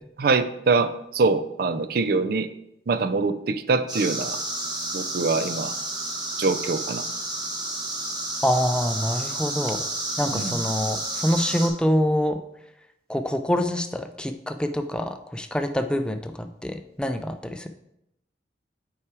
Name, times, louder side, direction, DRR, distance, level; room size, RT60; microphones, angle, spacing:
voice 1, 0.2-2.5 2.9-4.4 4.9-5.7 6.4-7.0 10.3-10.6, right 4 dB, 55° right, 12 dB, 0.4 m, -24 dB
sound 1, 3.9-11.7, right 1 dB, 25° right, 1.0 m, -31 dB
voice 2, 8.4-9.8 10.2-12.4 13.1-17.7, equal, 5° left, 7 dB, 0.4 m, -25 dB
5.8 x 4.7 x 4.7 m, 0.81 s
head